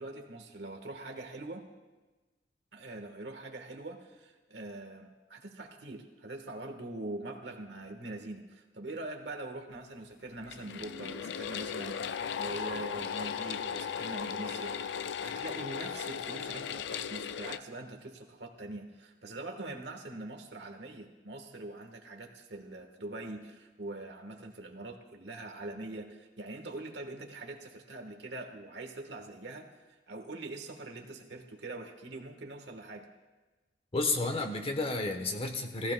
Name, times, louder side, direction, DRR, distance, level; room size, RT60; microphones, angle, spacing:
voice 1, 0.0-1.7 2.7-33.1, right 2 dB, 70° right, 5 dB, 1.3 m, -43 dB
sound 1, 10.4-17.6, left 7 dB, 70° left, 0.4 m, -37 dB
voice 2, 33.9-35.9, left 2 dB, 35° left, 5 dB, 1.0 m, -31 dB
17.5 x 14.5 x 2.2 m, 1.2 s
head